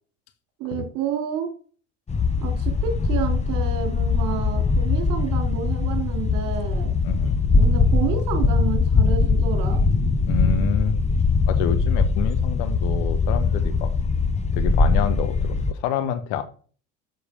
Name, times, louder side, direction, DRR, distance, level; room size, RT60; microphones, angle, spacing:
voice 1, 0.6-1.5 2.4-6.9 7.5-9.8, right 8 dB, 60° right, 2.7 m, -29 dB
sound 1, 2.1-15.7, left 4 dB, 15° left, 0.8 m, -21 dB
voice 2, 7.0-7.3 10.3-11.0 11.5-13.9 14.5-16.4, left 7 dB, 65° left, 1.3 m, -27 dB
7.6 x 6.3 x 3.6 m
hypercardioid pair, 70°, 38 cm